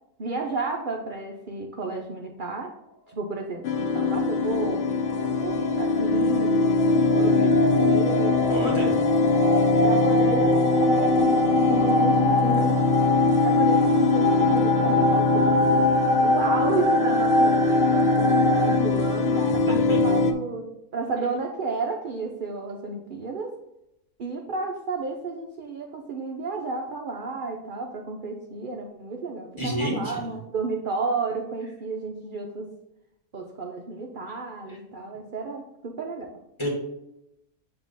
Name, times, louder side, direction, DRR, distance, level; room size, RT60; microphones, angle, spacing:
voice 1, 0.2-2.8 3.1-4.9 5.4-6.8 7.1-8.5 9.8-12.9 13.4-15.6 16.2-23.6 24.2-32.7 33.3-36.3, right 3 dB, 55° right, 2 dB, 0.5 m, -32 dB
sound 1, 3.6-20.3, left 3 dB, 65° left, 0.6 m, -22 dB
sound 2, 4.6-18.8, left 1 dB, 35° left, 1.1 m, -25 dB
voice 2, 8.5-8.9 19.7-20.0 29.6-30.3 34.7-34.8 36.6-36.7, equal, 20° left, -2 dB, 1.6 m, -29 dB
7.2 x 2.9 x 5.4 m, 0.85 s
omnidirectional pair, 1.6 m